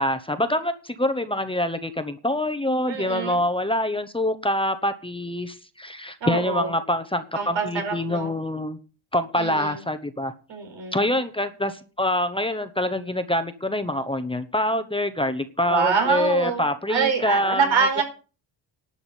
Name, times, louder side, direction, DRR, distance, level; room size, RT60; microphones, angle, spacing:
voice 1, 0.0-8.8 9.1-10.3 10.9-17.6 18.0-18.1, left 1 dB, 10° left, 9 dB, 0.9 m, -25 dB
voice 2, 2.9-3.4 6.2-6.7 7.3-8.3 9.4-9.8 10.5-11.0 15.7-16.6 16.9-18.0, right 5 dB, 75° right, 4 dB, 4.7 m, -25 dB
11.5 x 5.8 x 8.3 m, 0.36 s
cardioid pair, 120°, 45 cm